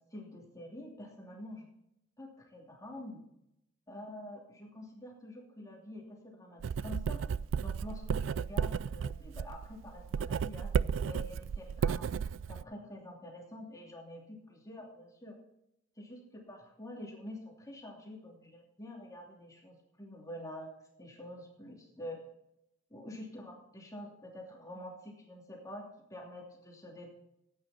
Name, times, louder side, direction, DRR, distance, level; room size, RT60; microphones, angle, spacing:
voice 1, 0.0-1.7 2.2-3.2 3.9-7.2 7.6-10.7 11.0-15.3 16.0-20.7 21.0-22.2 22.9-27.1, left 1 dB, 20° left, -1 dB, 2.8 m, -47 dB
Writing, 6.6-12.6, right 6 dB, 90° right, 0.3 m, -33 dB
15.0 x 9.2 x 4.3 m, 0.82 s
head